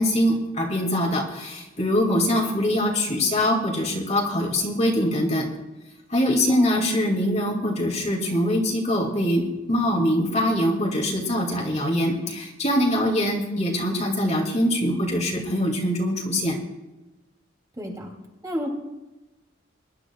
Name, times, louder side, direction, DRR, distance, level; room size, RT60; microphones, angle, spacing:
voice 1, 0.0-5.5 6.1-16.6, left 1 dB, 35° left, 0 dB, 2.4 m, -23 dB
voice 2, 6.5-6.9 17.8-18.1 18.4-18.7, equal, 20° right, -1 dB, 2.7 m, -30 dB
23.5 x 12.5 x 2.3 m, 1.1 s
head